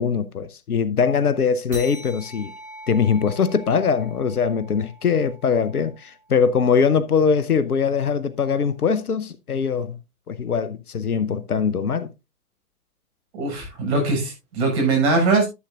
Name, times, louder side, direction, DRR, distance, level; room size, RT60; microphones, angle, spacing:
voice 1, 0.0-2.5 2.9-10.0 10.3-12.1, left 6 dB, 85° left, 0.9 m, -22 dB
sound 1, 1.7-6.6, equal, 75° right, 7.1 m, -42 dB
voice 2, 13.3-15.5, right 3 dB, 45° right, 6.8 m, -21 dB
12.5 x 8.0 x 2.5 m
figure-of-eight pair, 110°, 43 cm